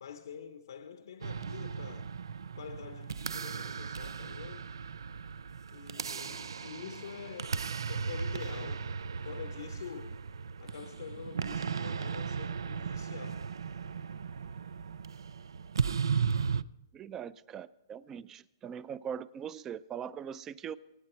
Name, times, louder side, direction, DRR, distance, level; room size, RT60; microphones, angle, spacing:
voice 1, 0.0-2.2 2.6-4.7 5.7-8.9 9.2-10.2 10.6-13.5, left 7 dB, 75° left, 0.8 m, -46 dB
sound 1, 1.2-16.6, right 6 dB, 90° right, 0.4 m, -36 dB
voice 2, 16.9-20.8, right 8 dB, 15° right, 0.4 m, -41 dB
23.5 x 9.4 x 4.3 m
hypercardioid pair, 150°, 2 cm